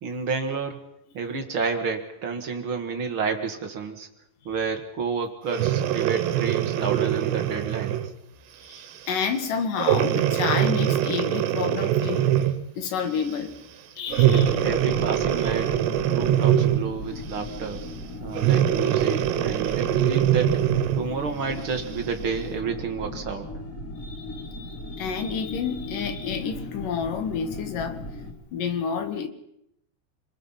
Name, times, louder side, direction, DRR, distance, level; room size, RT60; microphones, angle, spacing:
voice 1, 0.0-0.8 1.1-4.1 4.4-8.0 14.3-15.7 16.1-17.8 18.2-20.6 20.9-23.5, right 5 dB, 50° right, 5 dB, 1.6 m, -30 dB
Breathing, 5.5-8.1 8.7-9.0 9.8-12.7 14.1-17.0 18.4-21.1 21.7-21.8, right 11 dB, 75° right, 3.4 m, -23 dB
voice 2, 8.7-12.3 12.8-13.6 14.0-14.6 19.6-19.7 24.0-28.0 28.5-29.3, left 6 dB, 55° left, 8 dB, 2.9 m, -29 dB
sound 1, 14.1-28.3, left 1 dB, 20° left, 3.4 m, -37 dB
28.0 x 20.5 x 5.8 m, 0.78 s
omnidirectional pair, 5.1 m